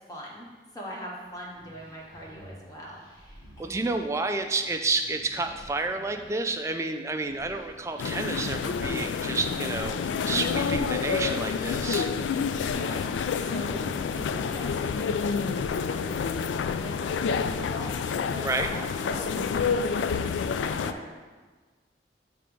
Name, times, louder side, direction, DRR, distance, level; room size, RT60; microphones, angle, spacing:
voice 1, 0.1-0.5 0.7-3.8 12.6-16.3 16.8-16.9 17.2-19.5 19.9-21.0, equal, 20° left, -3 dB, 0.8 m, -42 dB
sound 1, 1.2-18.7, equal, 50° left, 1.8 m, -52 dB
voice 2, 3.6-12.1 18.4-18.7, right 3 dB, 15° right, 6 dB, 0.3 m, -30 dB
sound 2, 8.0-20.9, left 6 dB, 90° left, 0.3 m, -28 dB
6.4 x 3.4 x 5.2 m, 1.4 s
head